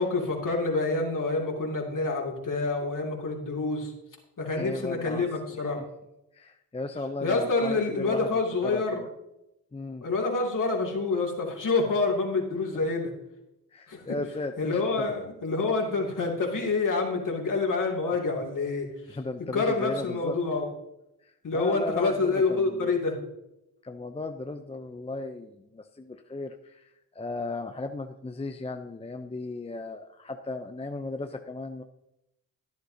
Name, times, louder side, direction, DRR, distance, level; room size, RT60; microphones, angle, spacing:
voice 1, 0.0-3.9 4.4-5.8 7.2-9.0 10.0-13.1 13.9-14.0 14.6-19.2 19.5-20.7 21.4-23.2, left 3 dB, 50° left, 0 dB, 2.7 m, -27 dB
voice 2, 4.6-5.2 5.8-5.9 6.3-8.3 8.6-9.1 9.7-10.1 12.8-12.9 13.7-15.1 19.1-20.4 21.2-22.9 23.8-31.8, left 2 dB, 15° left, 7 dB, 0.6 m, -36 dB
11.5 x 10.5 x 2.8 m, 0.89 s
supercardioid pair, 55°, 40 cm